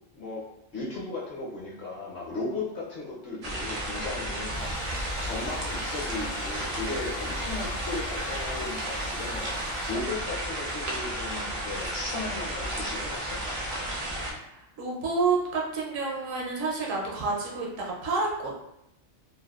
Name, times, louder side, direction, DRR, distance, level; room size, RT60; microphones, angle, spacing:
voice 1, 0.1-0.4 0.7-9.5 9.9-13.4, left 3 dB, 55° left, -5 dB, 1.0 m, -36 dB
sound 1, 3.4-14.3, right 1 dB, 65° right, 0.3 m, -33 dB
sound 2, 4.5-9.9, left 1 dB, 40° left, 0.4 m, -43 dB
voice 2, 14.5-18.5, right 4 dB, 80° right, -3 dB, 1.0 m, -29 dB
2.7 x 2.2 x 2.3 m, 0.82 s
omnidirectional pair, 1.3 m